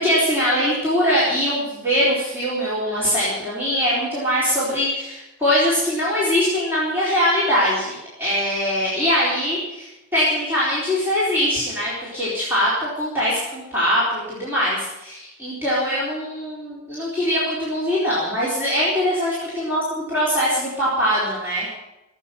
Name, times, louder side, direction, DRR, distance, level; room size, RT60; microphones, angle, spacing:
voice 1, 0.0-19.8 20.1-21.7, equal, 10° right, -9 dB, 4.3 m, -22 dB
16.5 x 8.3 x 9.3 m, 0.95 s
head